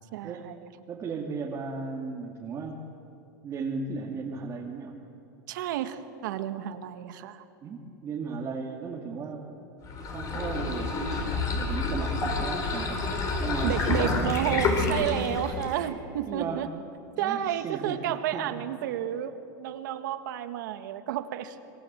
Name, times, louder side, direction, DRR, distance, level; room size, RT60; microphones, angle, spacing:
voice 1, 0.1-0.6 5.5-7.4 13.6-16.7 17.2-21.6, right 10 dB, 75° right, 9 dB, 1.8 m, -31 dB
voice 2, 0.9-2.8 3.4-5.0 7.6-9.5 10.1-11.0 11.5-13.0 13.4-14.0 16.3-16.7 17.2-18.1 18.3-18.5, right 4 dB, 30° right, -2 dB, 2.5 m, -35 dB
sound 1, 9.8-15.9, left 3 dB, 35° left, 5.1 m, -28 dB
26.0 x 23.5 x 7.6 m, 2.8 s
supercardioid pair, 135°, 10 cm